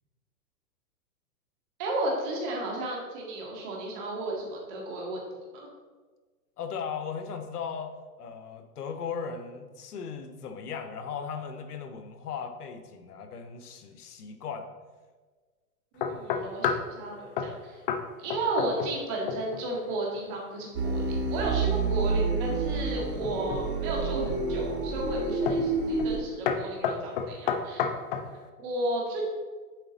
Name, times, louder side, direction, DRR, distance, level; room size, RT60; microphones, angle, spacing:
voice 1, 1.8-5.2 5.5-5.7 15.9-17.8 18.2-27.9 28.6-29.3, right 2 dB, 35° right, -2 dB, 1.9 m, -33 dB
voice 2, 6.6-14.7, left 6 dB, 85° left, 7 dB, 1.1 m, -37 dB
sound 1, 16.0-16.9 17.4-17.6 17.9-18.0 18.3-19.0 19.3-19.6 23.0-23.7 24.3-24.7 25.5-25.7 26.0-26.2 26.5-28.3, left 7 dB, 40° left, 0.5 m, -30 dB
sound 2, 20.7-26.2, right 4 dB, 80° right, 1.5 m, -29 dB
7.9 x 5.0 x 3.9 m, 1.4 s
hypercardioid pair, 150°, 45 cm